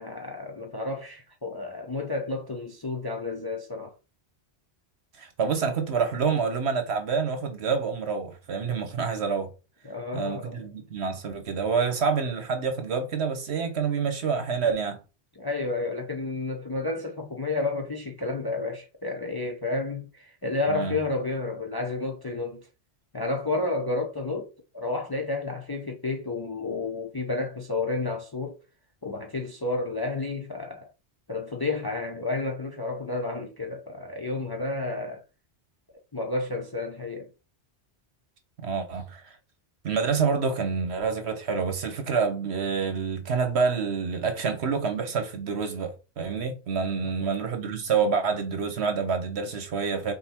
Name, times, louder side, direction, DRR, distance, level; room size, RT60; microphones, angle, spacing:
voice 1, 0.0-4.0 9.8-10.7 15.4-22.7 23.1-28.6 29.0-30.9 31.3-35.2 36.1-37.3 47.2-47.4, left 3 dB, 30° left, 0.4 m, -31 dB
voice 2, 5.2-9.5 10.1-15.0 20.7-20.9 38.6-39.4 39.8-50.1, right 5 dB, 70° right, 1.3 m, -27 dB
5.4 x 2.1 x 4.3 m
omnidirectional pair, 1.1 m